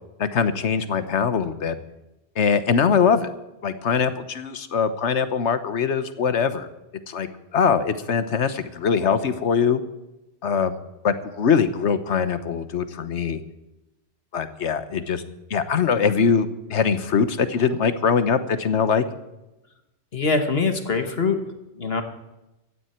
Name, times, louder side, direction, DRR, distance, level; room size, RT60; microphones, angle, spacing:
voice 1, 0.2-1.8 2.4-3.3 3.6-6.7 7.1-9.8 10.4-10.7 11.0-13.4 14.3-15.2 15.5-19.0, left 6 dB, 75° left, 12 dB, 1.3 m, -22 dB
voice 2, 20.1-21.4 21.8-22.0, left 4 dB, 55° left, 7 dB, 1.5 m, -23 dB
16.5 x 14.5 x 4.4 m, 0.96 s
omnidirectional pair, 1.2 m